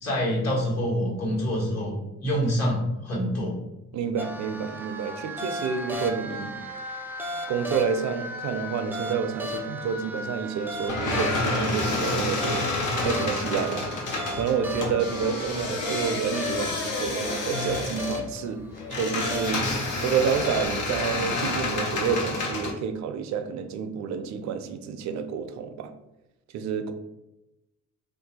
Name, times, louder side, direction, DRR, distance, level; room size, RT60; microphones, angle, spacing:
voice 1, 0.0-3.6, equal, 60° left, -4 dB, 1.3 m, -26 dB
voice 2, 3.9-6.6 7.5-12.7 13.0-13.9 14.4-18.6 18.9-19.7 20.0-25.9 26.5-26.9, right 6 dB, 65° right, 8 dB, 0.5 m, -29 dB
sound 1, 4.2-20.7, left 1 dB, 5° right, 0.3 m, -36 dB
sound 2, 10.9-22.7, left 2 dB, 85° left, 0.8 m, -29 dB
2.6 x 2.3 x 4.0 m, 0.96 s
cardioid pair, 90°, 30 cm